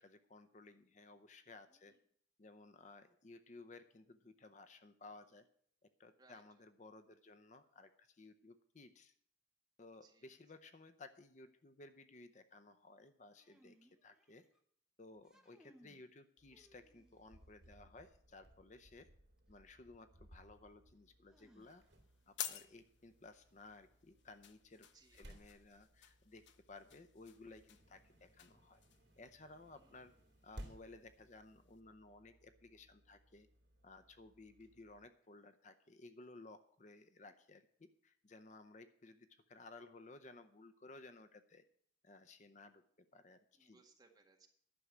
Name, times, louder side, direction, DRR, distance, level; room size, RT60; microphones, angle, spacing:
voice 1, 0.0-1.9 2.4-5.5 6.0-9.1 9.8-14.4 15.0-19.1 19.5-21.8 22.3-24.9 25.1-28.8 29.2-30.1 30.4-33.5 33.8-41.6 42.0-42.8 43.1-43.8, left 3 dB, 40° left, 10 dB, 0.7 m, -58 dB
sound 1, 13.4-14.6 15.1-16.0 16.5-17.4 19.4-19.5 21.3-22.1, equal, 5° right, 1.0 m, -68 dB
sound 2, 16.4-35.1, equal, 70° right, 2.8 m, -62 dB
sound 3, 21.6-31.8, left 10 dB, 85° left, 0.8 m, -54 dB
voice 2, 43.6-44.5, right 3 dB, 20° right, 2 dB, 1.7 m, -67 dB
11.5 x 6.3 x 8.3 m, 0.62 s
head